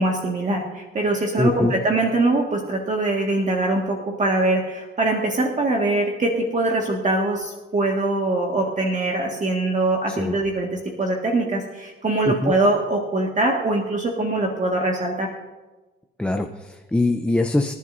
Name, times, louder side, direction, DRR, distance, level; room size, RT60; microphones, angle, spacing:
voice 1, 0.0-15.3, right 2 dB, 40° right, 0 dB, 1.8 m, -23 dB
voice 2, 1.4-1.7 10.1-10.3 12.3-12.5 16.2-17.7, left 2 dB, 5° left, 3 dB, 0.7 m, -22 dB
25.5 x 11.0 x 2.7 m, 1.2 s
cardioid pair, 90°, 20 cm